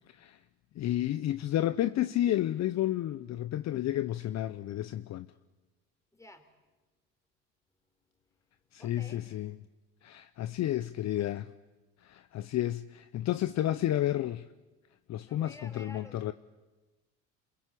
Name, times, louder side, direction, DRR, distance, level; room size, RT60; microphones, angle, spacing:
voice 1, 0.8-5.3 8.7-9.6 10.0-11.5 12.0-14.5 15.1-16.3, left 13 dB, 45° left, 0.9 m, -31 dB
voice 2, 6.1-6.5 8.8-9.2 15.2-16.3, left 1 dB, 10° left, 4.3 m, -51 dB
27.5 x 21.5 x 8.5 m
supercardioid pair, 85°, 37 cm